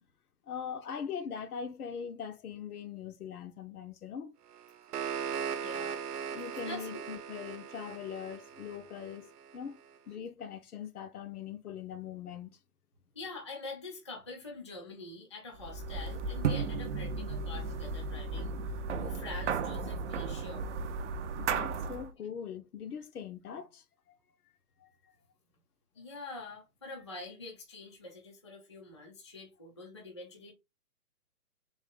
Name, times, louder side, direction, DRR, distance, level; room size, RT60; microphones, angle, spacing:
voice 1, 0.5-4.3 6.3-9.8 10.1-12.6 21.4-24.2 24.8-24.9, left 7 dB, 75° left, 0.9 m, -41 dB
sound 1, 4.5-9.6, right 7 dB, 80° right, 0.8 m, -39 dB
voice 2, 5.6-6.0 6.6-7.0 13.2-18.6 19.0-20.7 26.0-30.5, left 3 dB, 20° left, 0.3 m, -45 dB
sound 2, 15.6-22.1, right 4 dB, 50° right, 0.6 m, -34 dB
3.7 x 2.6 x 3.6 m
hypercardioid pair, 145°, 46 cm